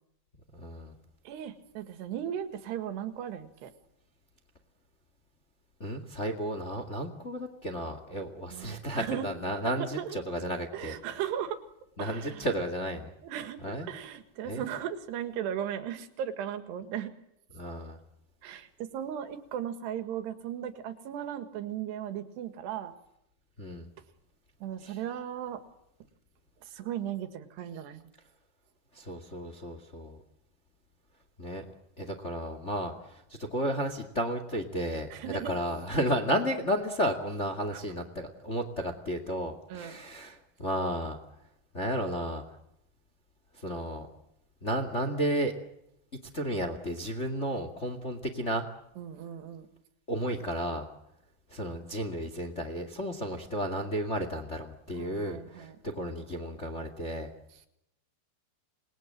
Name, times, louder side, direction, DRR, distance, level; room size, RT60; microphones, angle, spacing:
voice 1, 0.5-0.9 5.8-11.0 12.0-13.1 13.6-13.9 14.4-14.6 17.5-18.0 23.6-23.9 24.8-25.0 28.9-30.2 31.4-31.6 32.0-41.2 41.7-42.5 43.5-44.1 44.6-45.5 46.3-48.7 50.1-50.9 51.5-57.3, equal, 35° left, 7 dB, 1.1 m, -33 dB
voice 2, 1.3-3.7 8.5-9.3 9.9-10.2 10.7-11.6 12.0-12.5 13.2-13.6 13.9-17.1 18.4-22.9 24.0-24.1 24.6-25.6 26.6-28.1 35.1-35.6 37.7-37.8 39.7-40.0 49.0-49.7 54.9-55.8, right 10 dB, 70° right, 9 dB, 3.8 m, -37 dB
27.5 x 21.0 x 7.6 m, 0.81 s
omnidirectional pair, 5.1 m